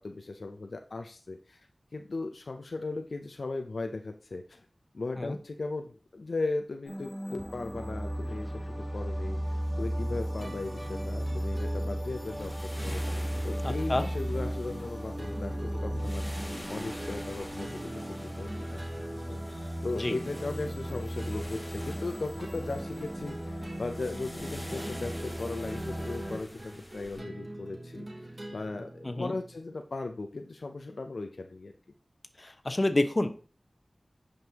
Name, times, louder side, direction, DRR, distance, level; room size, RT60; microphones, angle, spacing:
voice 1, 0.0-1.6 1.9-4.6 4.9-12.5 12.8-17.9 18.4-18.8 19.3-28.1 28.5-31.7, left 3 dB, 80° left, 5 dB, 0.5 m, -37 dB
sound 1, 6.8-26.4, equal, 10° right, 4.3 m, -35 dB
sound 2, 10.4-29.6, right 1 dB, 40° right, 1.0 m, -46 dB
sound 3, 12.1-27.2, equal, 5° left, 2.2 m, -47 dB
voice 2, 13.6-14.1 20.0-20.2 29.0-29.3 32.4-33.3, left 1 dB, 40° left, 8 dB, 0.9 m, -28 dB
9.5 x 5.2 x 2.9 m, 0.38 s
wide cardioid pair, 45°, 0 cm